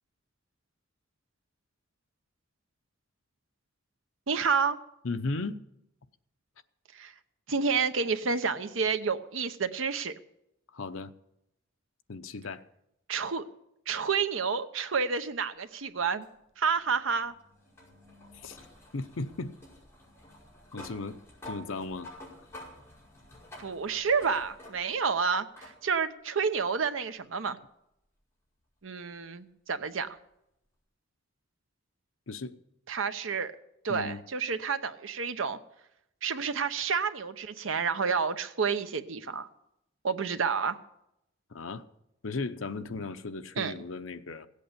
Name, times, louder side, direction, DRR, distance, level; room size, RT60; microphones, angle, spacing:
voice 1, 4.3-4.8 6.9-7.1 7.5-10.1 13.1-13.4 13.9-16.3 16.6-17.3 23.6-27.6 28.8-30.1 32.9-33.5 33.8-35.6 36.2-39.5 40.0-40.8 43.6-43.7, right 5 dB, 80° right, 0.8 m, -29 dB
voice 2, 5.0-5.6 10.7-11.1 12.1-12.6 18.3-18.6 18.9-19.5 20.7-22.1 32.3-32.6 33.9-34.2 41.5-41.8 42.2-44.5, left 3 dB, 85° left, 0.8 m, -36 dB
sound 1, 16.2-25.1 25.6-25.8 27.1-27.2 30.1-30.2, left 1 dB, 15° left, 5.3 m, -50 dB
17.0 x 8.4 x 6.8 m
head